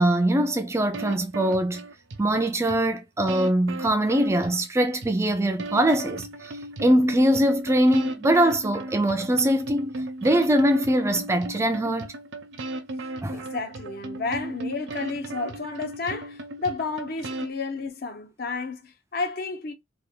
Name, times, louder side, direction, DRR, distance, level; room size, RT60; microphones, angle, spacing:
voice 1, 0.0-1.8 2.2-9.9 10.2-12.1 13.2-13.4, right 1 dB, 15° right, 0.3 m, -22 dB
sound 1, 0.9-2.3 2.7-2.8 3.3-4.7 5.0-5.1 5.6-17.5, right 2 dB, 75° right, 0.7 m, -36 dB
voice 2, 13.3-19.7, left 4 dB, 55° left, 0.7 m, -31 dB
3.3 x 2.3 x 3.6 m
head